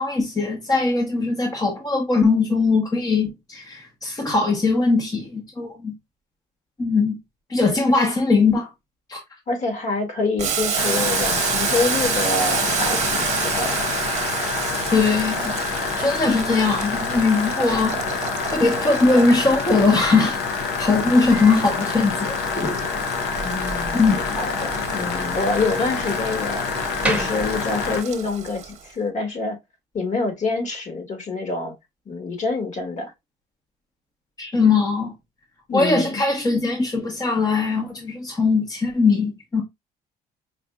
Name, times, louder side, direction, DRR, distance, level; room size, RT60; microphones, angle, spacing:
voice 1, 0.0-5.9 6.8-7.2 7.5-8.7 9.1-9.2 14.9-15.5 16.0-17.9 18.4-20.4 20.8-22.8 23.9-24.2 34.4-35.1 35.7-39.6, left 3 dB, 20° left, 0.8 m, -20 dB
voice 2, 9.5-13.8 23.4-26.7 27.0-29.6 29.9-31.7 32.0-33.1 35.7-36.2, left 3 dB, 45° left, 1.6 m, -26 dB
Boiling, 10.4-28.8, right 7 dB, 40° right, 0.9 m, -29 dB
sound 1, 10.8-28.0, left 6 dB, 85° left, 0.7 m, -27 dB
Slam, 18.9-28.2, right 2 dB, 5° right, 1.0 m, -36 dB
4.7 x 2.6 x 2.2 m
cardioid pair, 110°, 17 cm